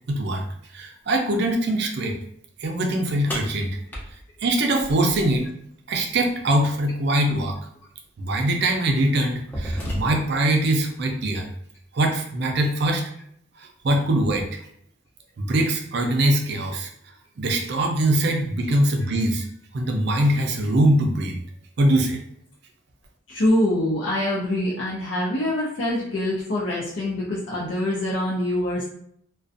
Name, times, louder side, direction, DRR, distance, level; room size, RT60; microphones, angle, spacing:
voice 1, 0.1-0.4 0.7-2.2 2.6-3.8 4.4-5.4 5.9-7.6 8.2-11.5 11.9-13.0 13.6-14.5 15.4-16.9 17.4-19.5 19.7-21.4 21.8-22.2, right 1 dB, 55° right, 3 dB, 0.4 m, -22 dB
sound 1, 3.3-5.5 7.3-7.4 8.3-8.5 9.0-10.5, equal, 10° left, 0.5 m, -32 dB
voice 2, 23.3-28.8, left 1 dB, 65° left, -6 dB, 0.5 m, -24 dB
2.4 x 2.2 x 2.5 m, 0.67 s
head